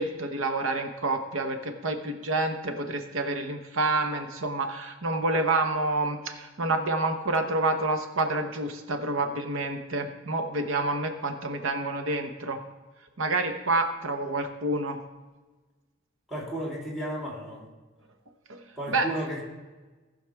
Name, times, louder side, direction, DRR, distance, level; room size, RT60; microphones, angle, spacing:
voice 1, 0.0-12.6 13.2-15.0 18.5-18.6 18.9-19.1, right 2 dB, 80° right, 6 dB, 1.0 m, -28 dB
voice 2, 16.3-17.7 18.8-19.5, right 1 dB, ahead, -4 dB, 3.0 m, -33 dB
18.5 x 6.4 x 3.5 m, 1.2 s
head